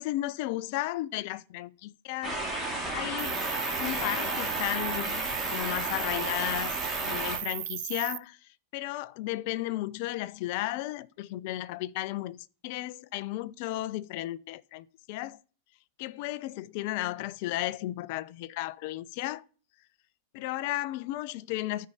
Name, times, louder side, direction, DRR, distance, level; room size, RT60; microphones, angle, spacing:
voice 1, 0.0-2.4 2.9-3.4 3.8-8.4 8.7-12.4 12.6-15.4 16.0-19.4 20.3-21.9, left 16 dB, 50° left, 0.5 m, -34 dB
sound 1, 2.2-7.4, right 1 dB, 5° right, 2.5 m, -33 dB
Cricket, 3.2-8.2, right 18 dB, 50° right, 0.4 m, -36 dB
13.5 x 4.7 x 5.7 m
figure-of-eight pair, 90°, 0 cm